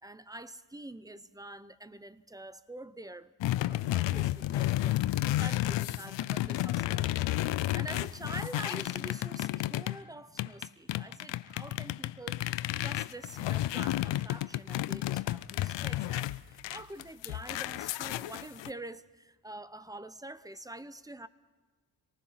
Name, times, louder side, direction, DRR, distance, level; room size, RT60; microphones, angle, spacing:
voice 1, 0.0-3.3 3.7-21.3, right 2 dB, 10° right, 0.8 m, -46 dB
sound 1, 3.4-10.0 10.4-18.7, left 15 dB, 80° left, 0.6 m, -32 dB
26.0 x 19.0 x 5.8 m
cardioid pair, 85°, 43 cm